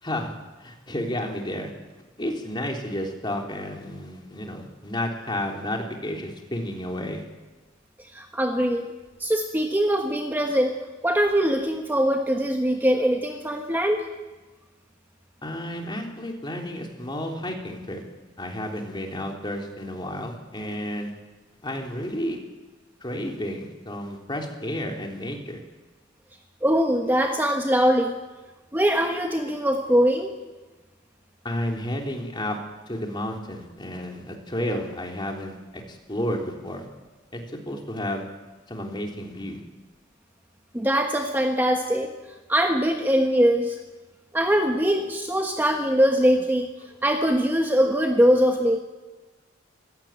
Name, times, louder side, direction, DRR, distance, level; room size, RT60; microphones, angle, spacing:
voice 1, 0.0-0.3 0.6-1.7 2.2-7.2 15.4-18.0 18.4-21.1 21.6-22.4 23.0-25.6 31.4-32.6 32.9-36.9 37.3-38.2 38.7-39.6, left 1 dB, 25° left, 1 dB, 3.5 m, -31 dB
voice 2, 8.1-8.9 9.2-10.8 11.0-14.0 26.6-28.2 28.7-30.3 40.7-42.1 42.5-43.8 44.3-46.7 47.0-48.8, equal, 10° right, 3 dB, 1.3 m, -22 dB
25.5 x 16.5 x 9.1 m, 1.2 s
head